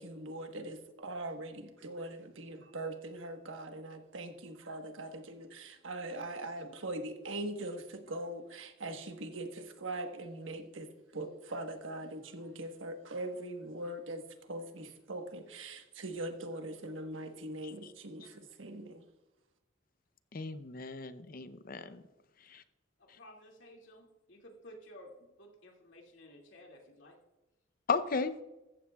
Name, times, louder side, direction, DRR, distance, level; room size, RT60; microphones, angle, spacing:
voice 1, 0.0-19.1, right 1 dB, 85° right, 1.3 m, -41 dB
voice 2, 20.3-22.0 22.5-22.6 27.9-28.4, left 4 dB, 45° left, 0.6 m, -35 dB
voice 3, 23.0-27.2, left 1 dB, 75° left, 2.4 m, -54 dB
15.0 x 14.0 x 2.4 m
head